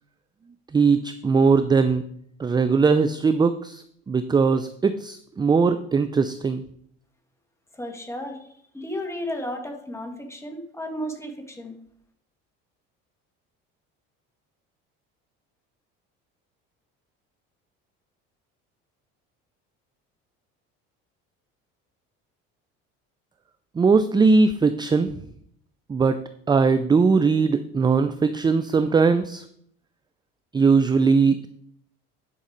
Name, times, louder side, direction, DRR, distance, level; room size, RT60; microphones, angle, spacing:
voice 1, 0.7-2.0 2.4-6.6 23.8-25.2 25.9-26.2 26.5-29.4 30.5-31.5, right 4 dB, 15° right, 11 dB, 0.4 m, -20 dB
voice 2, 7.7-8.5 8.7-11.8, equal, 10° left, 3 dB, 1.8 m, -33 dB
10.5 x 5.4 x 3.9 m, 0.67 s
supercardioid pair, 95°, 30 cm